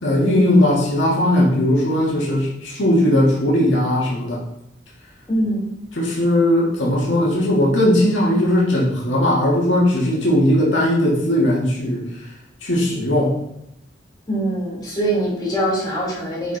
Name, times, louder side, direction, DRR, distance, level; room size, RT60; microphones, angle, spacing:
voice 1, 0.0-4.4 6.0-12.0 12.6-13.4, left 1 dB, 85° left, -4 dB, 1.7 m, -18 dB
voice 2, 5.3-5.7 14.3-16.6, right 1 dB, 20° left, -7 dB, 2.7 m, -23 dB
8.4 x 4.3 x 3.3 m, 0.79 s
head